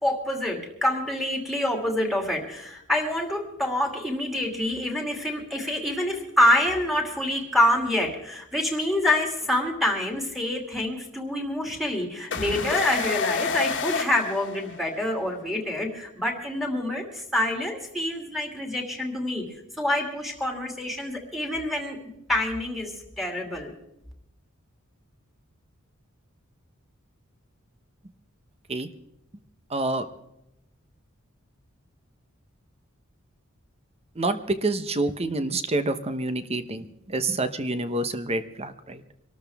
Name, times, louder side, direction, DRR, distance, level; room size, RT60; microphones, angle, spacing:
voice 1, 0.0-19.4 19.8-22.0 22.3-23.7, left 1 dB, ahead, 1 dB, 2.6 m, -26 dB
sound 1, 12.3-15.1, left 5 dB, 60° left, 1.6 m, -29 dB
voice 2, 29.7-30.0 34.2-39.0, right 2 dB, 30° right, 11 dB, 0.9 m, -27 dB
25.0 x 13.0 x 3.5 m, 0.84 s
head